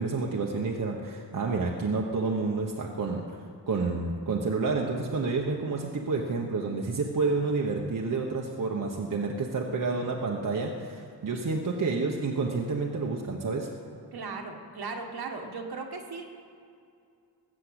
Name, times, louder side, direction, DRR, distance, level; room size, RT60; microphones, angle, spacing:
voice 1, 0.0-3.2 3.7-13.7, right 4 dB, 55° right, 0 dB, 1.1 m, -29 dB
voice 2, 14.1-16.2, right 4 dB, 70° right, 2 dB, 1.7 m, -37 dB
19.5 x 7.6 x 8.0 m, 2.4 s
wide cardioid pair, 175°, 39 cm